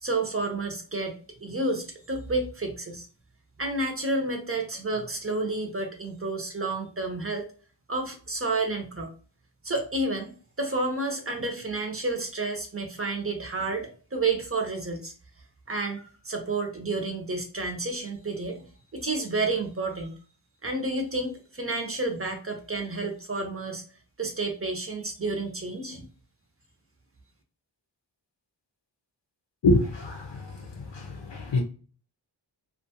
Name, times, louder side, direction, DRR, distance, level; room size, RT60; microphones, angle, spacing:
voice 1, 0.0-3.1 3.6-7.4 7.9-9.1 9.6-10.3 10.6-15.1 15.7-18.6 18.9-20.2 20.6-23.8 24.2-26.1, right 2 dB, 30° right, 0.6 m, -30 dB
voice 2, 29.6-30.5 30.9-31.6, left 2 dB, 75° left, 0.6 m, -25 dB
2.5 x 2.3 x 2.8 m
wide cardioid pair, 75°, 44 cm